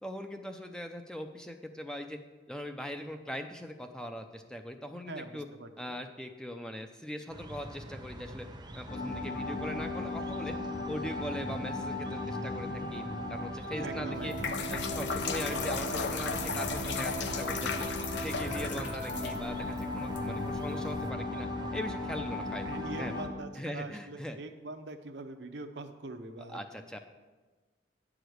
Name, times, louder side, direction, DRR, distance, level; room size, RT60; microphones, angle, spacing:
voice 1, 0.0-2.2 2.5-5.5 5.8-8.5 8.7-10.5 10.9-14.3 14.7-17.9 18.2-22.6 23.0-23.1 23.6-24.4 26.5-27.0, equal, 5° left, 6 dB, 0.5 m, -40 dB
voice 2, 5.1-6.0 13.8-14.5 22.6-26.6, right 2 dB, 70° right, 7 dB, 0.7 m, -43 dB
sound 1, 7.3-23.3, right 1 dB, 25° right, 0.7 m, -43 dB
sound 2, 8.9-23.3, left 2 dB, 55° left, 1.7 m, -37 dB
sound 3, 14.1-21.1, left 5 dB, 75° left, 0.6 m, -37 dB
9.0 x 4.9 x 7.8 m, 1.3 s
head